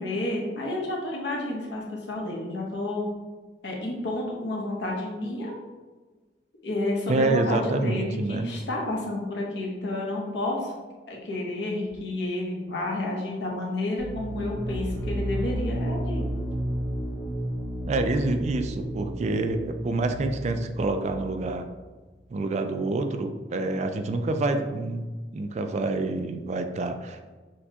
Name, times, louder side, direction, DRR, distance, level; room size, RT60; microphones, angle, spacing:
voice 1, 0.0-3.1 3.6-5.5 6.6-10.7 11.1-16.2, left 1 dB, 75° left, -2 dB, 1.0 m, -30 dB
voice 2, 7.1-8.5 17.9-21.7 22.3-25.0 25.3-27.4, right 2 dB, 40° right, 7 dB, 0.3 m, -27 dB
sound 1, 14.0-21.6, right 1 dB, 15° left, 0.8 m, -32 dB
6.3 x 2.3 x 2.8 m, 1.3 s
head